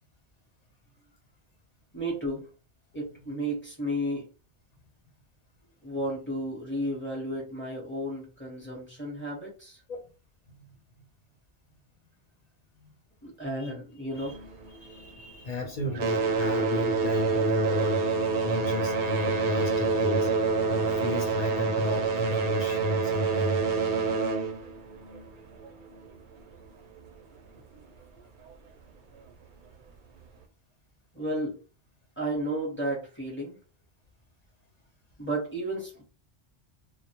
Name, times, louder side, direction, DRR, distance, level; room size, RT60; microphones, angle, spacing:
voice 1, 1.9-2.4 2.9-4.2 5.8-9.8 13.2-14.4 25.6-25.7 31.1-31.6 32.2-33.6 35.2-36.0, right 1 dB, 10° left, 0.8 m, -33 dB
sound 1, 14.1-15.5 15.8-26.1 27.0-27.1 27.7-27.8 28.5-28.6, right 4 dB, 60° right, 0.6 m, -27 dB
voice 2, 14.7-18.0 18.4-20.3 20.7-23.6, left 3 dB, 55° left, 0.5 m, -33 dB
2.2 x 2.0 x 2.8 m
omnidirectional pair, 1.1 m